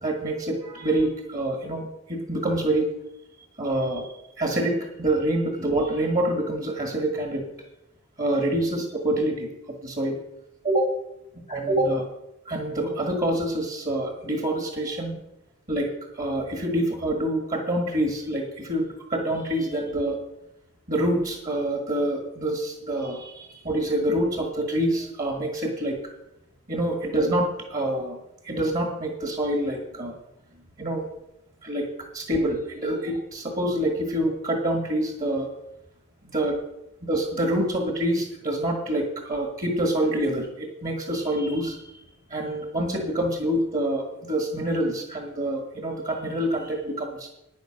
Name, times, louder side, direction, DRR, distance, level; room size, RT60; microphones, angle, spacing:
voice 1, 0.0-2.9 3.6-7.5 8.2-10.2 10.6-10.9 11.5-12.0 12.4-15.1 15.7-20.2 20.9-26.0 26.7-28.2 28.4-30.2 30.8-31.0 31.6-35.5 36.3-36.6 37.1-41.9 42.3-47.3, right 1 dB, 35° right, 3 dB, 1.7 m, -26 dB
10.5 x 9.5 x 6.3 m, 0.88 s
head